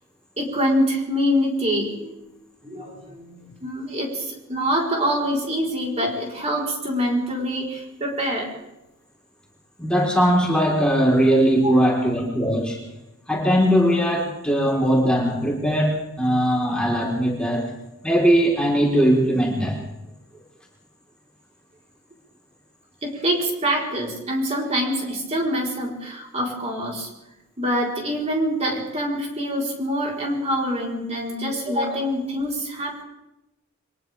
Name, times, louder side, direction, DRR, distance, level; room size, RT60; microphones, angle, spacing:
voice 1, 0.4-2.1 2.6-8.5 11.6-11.7 23.0-27.1 27.6-33.0, equal, 30° right, -2 dB, 4.6 m, -25 dB
voice 2, 9.8-12.8 13.3-17.7 18.0-19.8, equal, 5° left, -4 dB, 4.5 m, -20 dB
29.5 x 24.0 x 3.7 m, 0.91 s
head